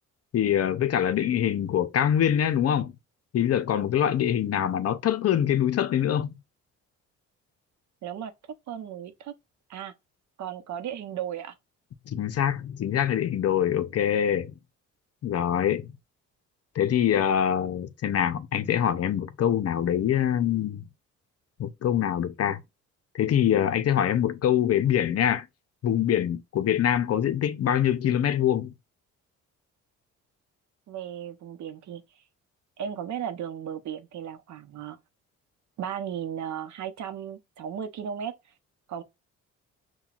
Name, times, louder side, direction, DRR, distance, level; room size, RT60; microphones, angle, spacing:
voice 1, 0.3-2.9 3.3-6.4 12.1-14.5 15.2-15.9 16.8-20.8 21.6-22.6 23.1-25.5 25.8-28.7, left 10 dB, 55° left, 0.6 m, -24 dB
voice 2, 8.0-8.3 8.7-9.3 9.7-9.9 10.4-11.5 30.9-32.0 32.8-35.0 35.8-38.3 38.9-39.0, right 9 dB, 70° right, 0.7 m, -35 dB
5.7 x 2.3 x 2.4 m
cardioid pair, 90°, 30 cm